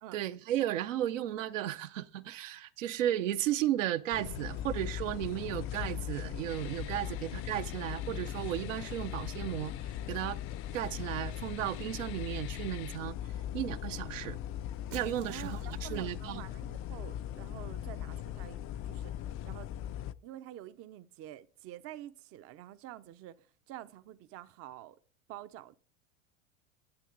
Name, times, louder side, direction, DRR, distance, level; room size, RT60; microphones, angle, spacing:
voice 1, 0.1-9.7 10.1-10.4 10.7-13.2 13.5-14.4 14.9-16.4, right 12 dB, 75° right, 0.8 m, -34 dB
sound 1, 4.1-20.1, left 11 dB, 35° left, 0.5 m, -39 dB
sound 2, 6.5-13.0, left 16 dB, 60° left, 0.8 m, -52 dB
Shatter, 14.9-16.3, right 14 dB, 55° right, 1.0 m, -54 dB
voice 2, 15.2-19.2 19.4-19.7 20.2-25.0 25.3-25.8, right 13 dB, 35° right, 0.6 m, -48 dB
11.5 x 8.4 x 3.8 m
hypercardioid pair, 95°, 39 cm